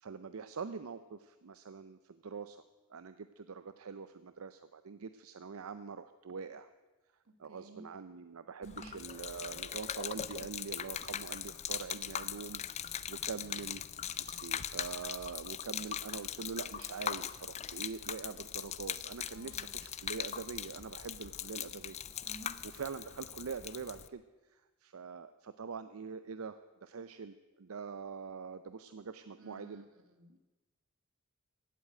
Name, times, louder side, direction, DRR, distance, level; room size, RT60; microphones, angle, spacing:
voice 1, 0.0-2.6 2.9-6.7 7.4-13.8 14.2-22.0 22.6-24.2 24.5-29.8, right 5 dB, 90° right, 11 dB, 0.6 m, -44 dB
voice 2, 7.2-7.9 8.6-9.0 19.3-19.8 22.2-22.6 29.3-30.4, right 2 dB, 75° right, 8 dB, 1.6 m, -54 dB
Gurgling / Liquid, 8.6-24.1, left 9 dB, 30° left, 0.5 m, -40 dB
15.5 x 8.2 x 9.0 m, 1.2 s
head